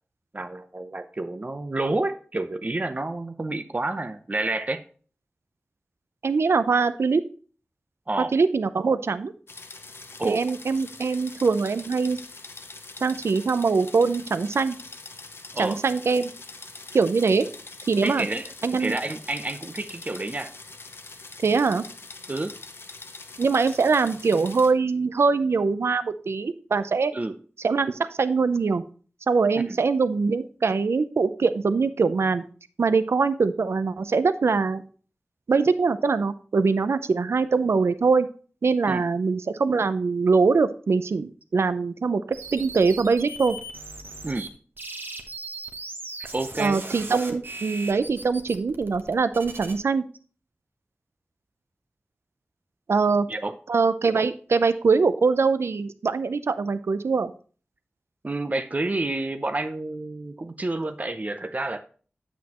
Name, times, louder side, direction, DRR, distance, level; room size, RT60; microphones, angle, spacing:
voice 1, 0.3-4.8 8.1-8.4 10.2-10.5 15.5-15.8 18.0-18.5 18.8-20.5 22.3-22.5 27.1-27.4 29.5-29.8 38.9-39.1 44.2-44.5 46.3-46.8 53.3-53.6 58.2-61.8, right 2 dB, 35° right, 9 dB, 0.6 m, -29 dB
voice 2, 6.2-7.2 8.3-9.3 10.2-12.2 13.0-14.8 15.6-16.3 16.9-17.4 17.9-18.3 18.6-19.0 21.4-21.9 23.4-27.1 27.6-28.8 29.3-32.4 32.8-34.8 35.5-38.3 38.6-42.2 42.5-43.6 46.6-50.0 52.9-53.3 53.7-57.3, right 4 dB, 85° right, 13 dB, 0.5 m, -23 dB
sound 1, 9.5-24.7, left 3 dB, 65° left, 0.8 m, -43 dB
sound 2, 42.3-44.5 44.8-49.7, right 2 dB, 55° right, 1.1 m, -38 dB
8.1 x 7.4 x 3.0 m, 0.40 s
wide cardioid pair, 75°, 4 cm